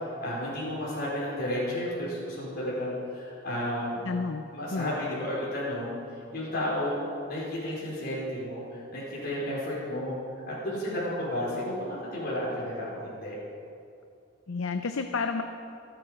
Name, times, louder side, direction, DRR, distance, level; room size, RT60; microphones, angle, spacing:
voice 1, 0.2-4.0 4.5-6.0 6.3-10.2 10.5-11.7 12.1-13.4, left 1 dB, 45° left, -7 dB, 4.7 m, -32 dB
voice 2, 4.0-4.4 4.7-5.0 14.5-15.4, left 4 dB, 70° left, 7 dB, 0.6 m, -30 dB
26.5 x 8.9 x 5.1 m, 2.5 s
head